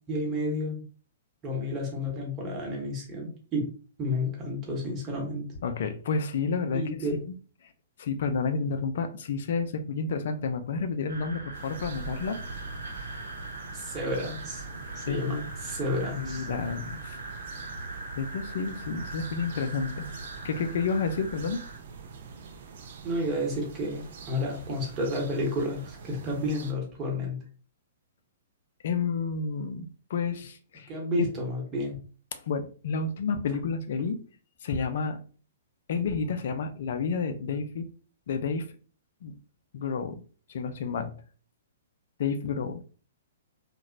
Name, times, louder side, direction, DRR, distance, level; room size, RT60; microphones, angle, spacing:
voice 1, 0.1-0.8 1.4-3.7 4.0-5.5 6.7-7.2 13.7-14.6 14.9-16.5 23.0-27.4 30.9-31.9, left 1 dB, 25° right, 1.0 m, -31 dB
voice 2, 5.6-6.8 7.2-7.3 7.6-7.7 8.0-12.4 15.1-15.5 16.2-17.2 18.2-20.1 20.4-21.6 28.8-30.9 32.3-34.2 34.6-35.2 35.9-37.8 38.3-38.7 39.2-39.3 39.7-40.2 40.5-41.1 42.2-42.8, left 5 dB, 55° left, 0.4 m, -30 dB
sound 1, 11.1-21.8, right 2 dB, 75° right, 0.7 m, -40 dB
sound 2, 11.5-26.7, right 6 dB, 55° right, 0.4 m, -45 dB
2.8 x 2.1 x 2.4 m
figure-of-eight pair, 110°, 0 cm